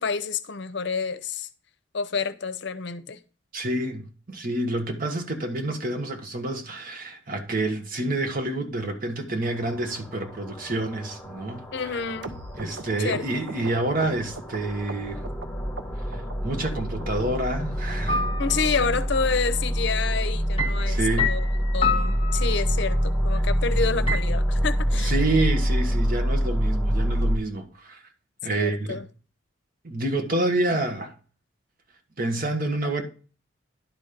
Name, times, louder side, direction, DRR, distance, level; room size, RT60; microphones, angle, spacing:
voice 1, 0.0-1.5 1.9-3.2 11.7-12.4 13.0-13.4 18.4-21.5 21.7-25.1 28.5-29.1, left 5 dB, 60° left, 0.7 m, -28 dB
voice 2, 3.5-12.0 12.5-15.2 16.4-18.3 20.9-21.3 25.0-28.0 28.4-29.0 29.8-31.1 32.2-33.0, right 2 dB, 45° right, 1.3 m, -28 dB
sound 1, 9.4-27.4, equal, 10° left, 1.8 m, -27 dB
sound 2, 12.2-15.5 15.8-16.4 16.7-17.2 17.5-17.6 17.9-18.1 18.4-18.5 18.8-19.0 19.3-19.4 19.7-19.9 20.2-20.3 20.5-20.7 21.1-21.2 21.4-21.6 22.0-22.1, right 3 dB, 65° right, 0.9 m, -40 dB
sound 3, 18.1-18.8 20.6-22.9 24.1-24.2, left 4 dB, 30° left, 0.8 m, -28 dB
11.0 x 4.3 x 5.1 m
head